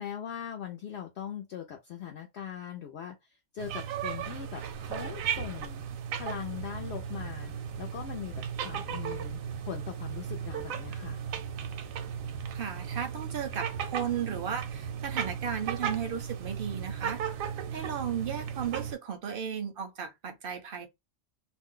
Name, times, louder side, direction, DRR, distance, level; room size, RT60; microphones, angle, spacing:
voice 1, 0.0-5.8 6.2-7.5 7.8-11.2, left 9 dB, 65° left, 0.7 m, -41 dB
sound 1, 3.6-18.9, right 7 dB, 80° right, 1.0 m, -36 dB
voice 2, 12.5-17.2 17.7-20.9, right 8 dB, 55° right, 0.7 m, -35 dB
2.5 x 2.1 x 3.6 m
omnidirectional pair, 1.4 m